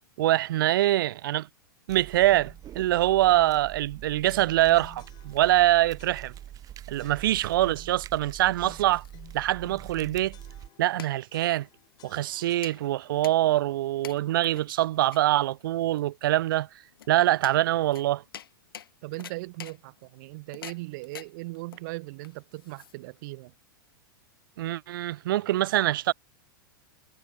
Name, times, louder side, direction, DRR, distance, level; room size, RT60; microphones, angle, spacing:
voice 1, 0.2-1.5 1.9-6.3 6.9-9.0 9.3-10.4 10.8-11.7 12.0-16.7 17.1-18.2 24.6-26.1, right 14 dB, 70° right, 0.5 m, -24 dB
sound 1, 1.9-10.7, right 12 dB, 30° right, 2.9 m, -44 dB
sound 2, 2.3-2.7 3.3-3.6 4.3-5.7 6.0-6.6 7.0-8.0 8.6-11.0 11.3-13.2, left 14 dB, 35° left, 2.1 m, -54 dB
sound 3, 8.4-23.3, left 10 dB, 80° left, 4.8 m, -48 dB
voice 2, 19.0-23.5, right 24 dB, 55° right, 1.0 m, -39 dB
hypercardioid pair, 120°, 12 cm